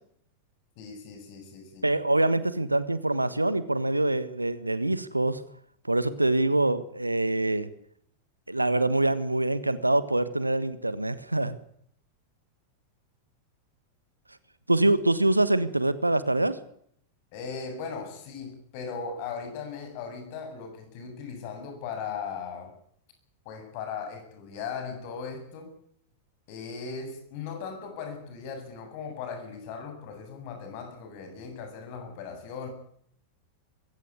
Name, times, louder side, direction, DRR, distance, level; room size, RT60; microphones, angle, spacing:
voice 1, 0.8-1.9 17.3-22.7 23.4-25.7 26.5-32.7, left 5 dB, 45° left, 6 dB, 7.9 m, -38 dB
voice 2, 1.8-5.4 5.9-7.7 8.5-11.6 14.7-16.6, right 2 dB, 85° right, 15 dB, 1.4 m, -25 dB
21.5 x 17.0 x 9.9 m, 0.67 s
figure-of-eight pair, 90°, 0 cm